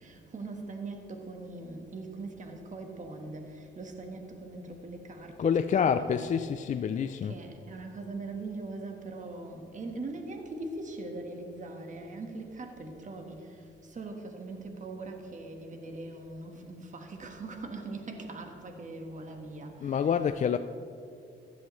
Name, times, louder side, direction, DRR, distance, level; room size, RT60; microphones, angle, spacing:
voice 1, 0.0-6.9 7.2-20.6, right 2 dB, 40° right, 1.4 m, -41 dB
voice 2, 5.4-7.3 19.8-20.6, left 7 dB, 40° left, 0.4 m, -27 dB
15.5 x 11.0 x 3.1 m
cardioid pair, 90°, 20 cm